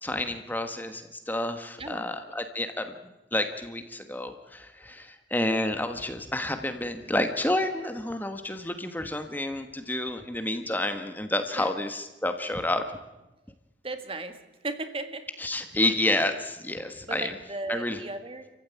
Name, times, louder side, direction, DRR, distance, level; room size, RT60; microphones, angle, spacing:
voice 1, 0.0-13.0 15.4-17.3 17.7-18.0, left 1 dB, 10° left, 7 dB, 1.4 m, -30 dB
voice 2, 1.8-2.1 11.5-11.7 13.8-14.4 14.6-15.3 17.1-18.5, right 2 dB, 30° right, 8 dB, 2.1 m, -36 dB
29.5 x 15.0 x 9.4 m, 1.0 s
head